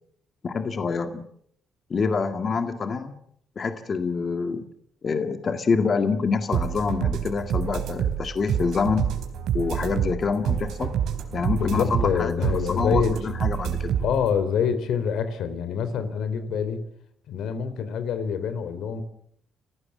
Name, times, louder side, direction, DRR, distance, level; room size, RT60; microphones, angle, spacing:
voice 1, 0.4-1.3 1.9-3.2 3.6-4.6 5.0-9.1 9.5-10.9 11.3-14.0, left 5 dB, 45° left, 7 dB, 2.0 m, -26 dB
sound 1, 6.5-14.3, right 9 dB, 80° right, 3.9 m, -27 dB
voice 2, 11.3-13.1 14.0-16.8 17.3-19.0, left 7 dB, 80° left, 11 dB, 3.7 m, -26 dB
29.5 x 15.5 x 7.4 m, 0.68 s
cardioid pair, 90°, 0 cm